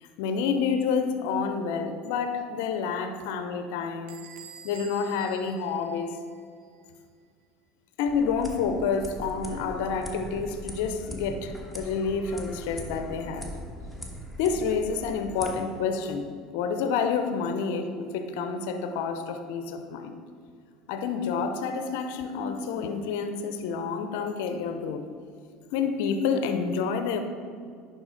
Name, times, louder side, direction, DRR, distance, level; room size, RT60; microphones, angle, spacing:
voice 1, 0.0-4.2 4.6-6.2 8.0-13.5 14.4-20.2 20.9-25.1 25.7-27.2, left 5 dB, 70° left, 7 dB, 0.6 m, -29 dB
Bell / Door, 4.1-6.6, right 9 dB, 70° right, 0.5 m, -49 dB
sound 1, 8.1-15.5, equal, 5° right, 1.2 m, -40 dB
11.0 x 4.0 x 3.9 m, 2.1 s
hypercardioid pair, 80°, 0 cm